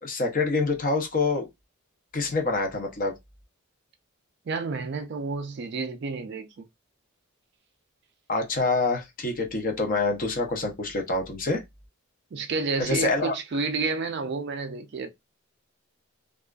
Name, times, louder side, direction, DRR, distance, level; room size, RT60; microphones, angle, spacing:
voice 1, 0.0-1.5 2.1-3.1 8.3-11.6 12.9-13.3, left 3 dB, 40° left, 0.6 m, -26 dB
voice 2, 4.5-6.6 12.3-15.1, right 4 dB, 50° right, 0.3 m, -30 dB
2.4 x 2.3 x 2.2 m
head